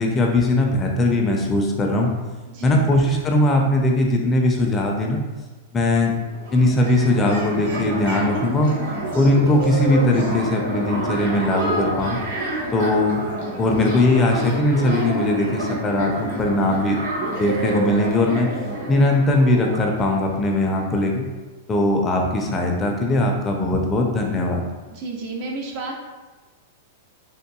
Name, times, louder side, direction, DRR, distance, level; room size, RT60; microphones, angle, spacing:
voice 1, 0.0-2.1 2.6-5.2 5.7-6.1 6.5-8.7 9.1-12.2 12.7-13.2 13.5-18.5 18.9-21.2 21.7-24.6, left 1 dB, 20° left, 1 dB, 0.5 m, -20 dB
voice 2, 2.5-2.9 24.9-25.9, right 3 dB, 50° right, 0 dB, 0.6 m, -31 dB
sound 1, 6.2-20.9, right 1 dB, 70° right, 1.0 m, -29 dB
3.6 x 2.5 x 2.3 m, 1.2 s
hypercardioid pair, 110°, 0 cm